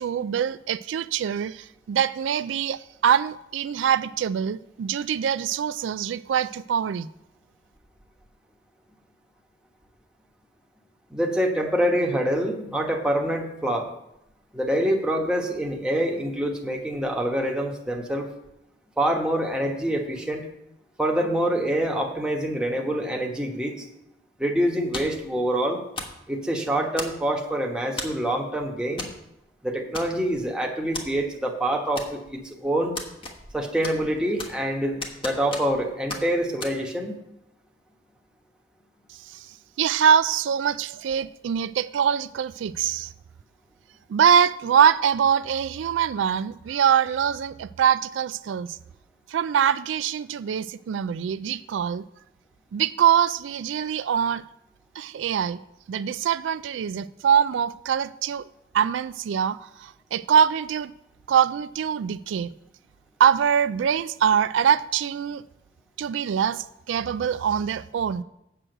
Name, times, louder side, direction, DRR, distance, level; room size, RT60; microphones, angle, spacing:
voice 1, 0.0-7.1 39.2-39.5 39.8-43.1 44.1-48.8 49.3-52.1 52.7-54.4 55.0-55.6 55.9-58.5 58.7-60.9 61.3-62.5 63.2-65.4 66.0-68.2, right 8 dB, 90° right, 0.3 m, -23 dB
voice 2, 11.1-13.9 14.5-18.3 19.0-20.5 21.0-23.8 24.4-25.8 26.3-29.1 29.6-32.9 33.5-37.1, right 1 dB, 5° right, 1.2 m, -26 dB
sound 1, 24.9-25.3 26.0-26.2 27.0-27.4 28.0-28.3 29.0-29.2 29.4-29.5 29.9-30.4 30.9-31.1 32.0-32.4 33.0-33.6 33.8-34.7 35.0-35.8 36.1-36.2 36.6-36.7, left 2 dB, 30° left, 1.3 m, -35 dB
7.8 x 6.1 x 7.8 m
head